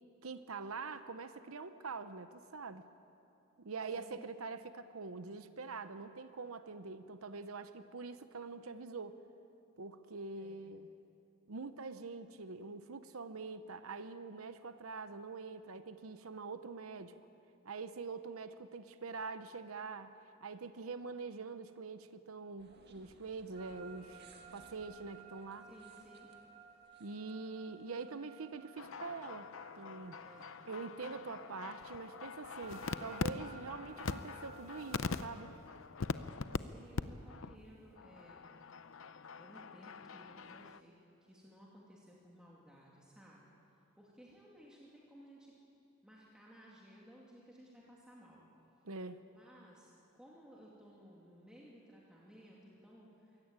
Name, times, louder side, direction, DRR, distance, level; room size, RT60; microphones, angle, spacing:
voice 1, 0.2-2.9 3.6-9.2 9.8-10.9 11.5-17.1 17.6-20.2 20.4-25.7 27.0-29.5 29.7-30.2 30.7-35.5 48.8-49.2, right 4 dB, 90° right, 11 dB, 0.9 m, -45 dB
voice 2, 3.9-4.3 10.3-10.7 25.6-26.3 30.2-30.6 36.5-38.6 39.4-43.4 44.0-45.5 46.0-48.4 49.3-53.4, equal, 5° right, -5 dB, 2.6 m, -58 dB
sound 1, 22.6-28.0, right 3 dB, 50° right, 2.0 m, -64 dB
sound 2, 23.5-35.4, right 4 dB, 30° right, 2.4 m, -57 dB
sound 3, 28.8-36.6 36.9-37.0 37.3-37.6 37.9-40.8, left 4 dB, 70° left, 0.7 m, -43 dB
23.0 x 17.0 x 8.9 m, 2.7 s
head